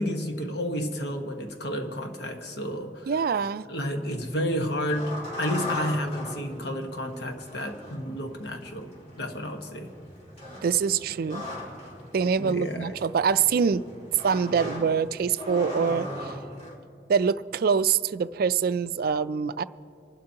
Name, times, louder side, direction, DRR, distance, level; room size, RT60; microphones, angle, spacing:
voice 1, 0.0-3.1 3.7-9.9 12.4-12.9, equal, 65° left, 1.3 m, -31 dB
voice 2, 3.1-3.6 10.6-11.5 12.1-13.8 14.2-16.3 17.1-19.6, right 6 dB, 60° right, 0.4 m, -25 dB
sound 1, 4.7-16.8, left 1 dB, 40° left, 2.6 m, -39 dB
27.0 x 12.0 x 2.9 m
head